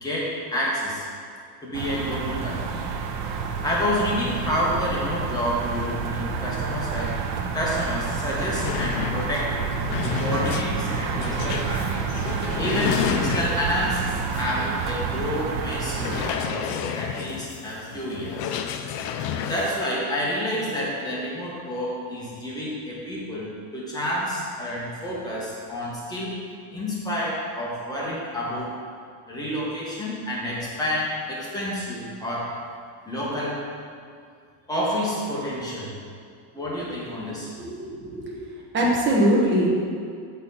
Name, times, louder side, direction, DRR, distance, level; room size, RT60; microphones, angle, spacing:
voice 1, 0.0-1.1 1.6-2.8 3.6-7.2 7.5-9.6 9.9-12.0 12.6-18.5 19.5-26.3 26.7-28.8 29.3-32.6 33.0-33.6 34.7-35.9 36.5-37.5, equal, 10° left, -6 dB, 1.3 m, -29 dB
sound 1, 1.7-16.3, right 6 dB, 90° right, 0.7 m, -29 dB
sound 2, 7.8-7.9 8.1-13.8 14.3-14.5 14.9-15.0 15.9-19.8, left 8 dB, 55° left, 0.5 m, -30 dB
voice 2, 37.6-38.4 38.7-39.8, right 1 dB, 25° right, -3 dB, 1.2 m, -22 dB
7.2 x 4.4 x 4.1 m, 2.2 s
cardioid pair, 145°, 45 cm